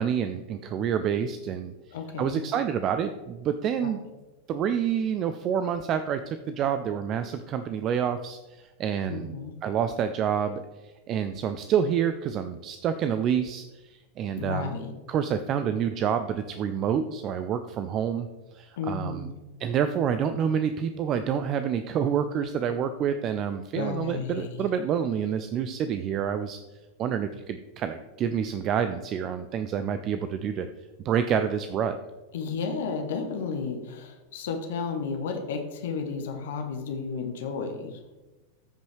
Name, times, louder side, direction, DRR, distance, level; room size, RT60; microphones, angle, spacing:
voice 1, 0.0-1.7 2.2-4.0 4.5-9.3 9.6-14.7 15.1-18.3 18.5-19.3 19.6-26.6 27.0-30.7 31.0-31.9, right 8 dB, 35° right, 10 dB, 0.4 m, -28 dB
voice 2, 1.9-2.4 3.8-3.9 9.1-9.5 14.4-14.9 18.8-19.3 23.7-24.5 32.3-38.0, left 5 dB, 55° left, 4 dB, 1.0 m, -32 dB
14.0 x 5.2 x 3.3 m, 1.2 s
figure-of-eight pair, 90°, 0 cm